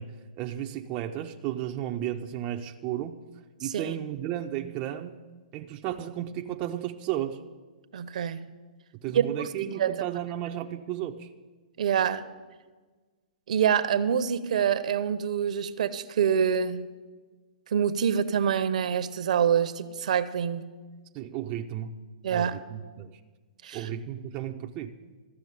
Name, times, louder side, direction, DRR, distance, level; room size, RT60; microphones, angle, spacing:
voice 1, 0.0-3.2 3.6-5.1 5.5-7.4 9.0-11.3 21.1-22.0 22.3-23.2 23.7-24.9, right 11 dB, 25° right, 4 dB, 0.5 m, -34 dB
voice 2, 7.9-8.5 9.1-9.3 9.6-10.1 11.8-12.2 13.5-16.8 17.7-20.6 22.2-22.5 23.6-23.9, right 8 dB, 60° right, 13 dB, 0.7 m, -26 dB
13.5 x 6.2 x 9.3 m, 1.4 s
hypercardioid pair, 150°, 4 cm